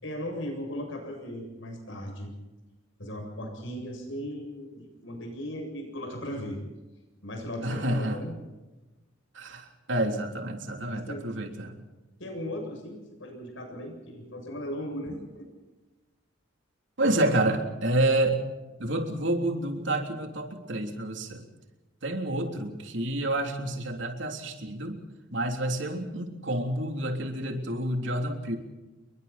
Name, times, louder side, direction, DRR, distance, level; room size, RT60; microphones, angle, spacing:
voice 1, 0.0-2.3 3.0-6.6 7.2-8.3 10.9-11.3 12.2-15.5, equal, 75° left, 3 dB, 7.7 m, -37 dB
voice 2, 7.6-8.2 9.3-11.8 17.0-18.4 18.8-21.4 22.0-25.0 25.3-28.6, right 1 dB, 65° right, 4 dB, 3.4 m, -29 dB
29.5 x 23.0 x 4.4 m, 1.1 s
head